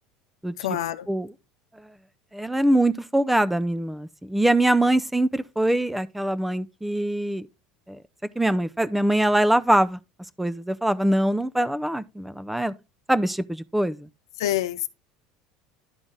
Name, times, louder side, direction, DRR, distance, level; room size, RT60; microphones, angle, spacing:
voice 1, 0.6-1.1 14.4-14.9, left 13 dB, 90° left, 0.5 m, -26 dB
voice 2, 2.3-7.4 7.9-8.0 8.4-10.0 10.4-12.7 13.1-14.1, right 1 dB, 5° right, 0.5 m, -23 dB
11.5 x 3.9 x 3.7 m
supercardioid pair, 95°, 2 cm